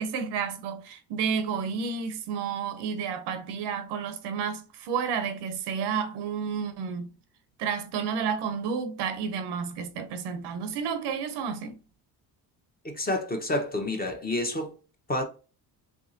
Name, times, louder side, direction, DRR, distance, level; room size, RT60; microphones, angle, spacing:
voice 1, 0.0-7.1 7.6-11.8, right 6 dB, 85° right, 0.7 m, -31 dB
voice 2, 12.8-14.8 15.1-15.2, left 1 dB, 20° left, 1.0 m, -29 dB
3.5 x 3.1 x 2.7 m
cardioid pair, 85°, 40 cm